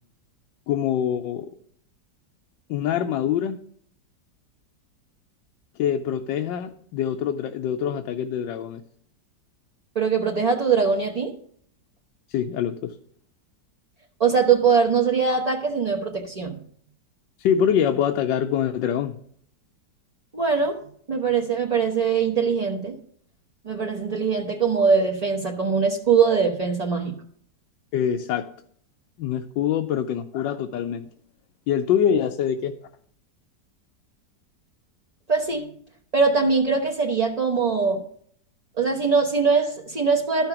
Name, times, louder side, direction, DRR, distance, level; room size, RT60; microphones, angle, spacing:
voice 1, 0.7-1.5 2.7-3.6 5.8-8.8 12.3-12.9 17.4-19.2 27.9-28.5 29.2-31.1 31.7-32.7, left 9 dB, 90° left, 5 dB, 1.3 m, -24 dB
voice 2, 9.9-11.3 14.2-16.6 20.3-20.8 21.1-23.0 23.7-27.2 35.3-35.7 36.1-38.0 38.8-40.5, right 5 dB, 40° right, 0 dB, 0.6 m, -22 dB
12.5 x 5.8 x 5.8 m, 0.62 s
omnidirectional pair, 1.9 m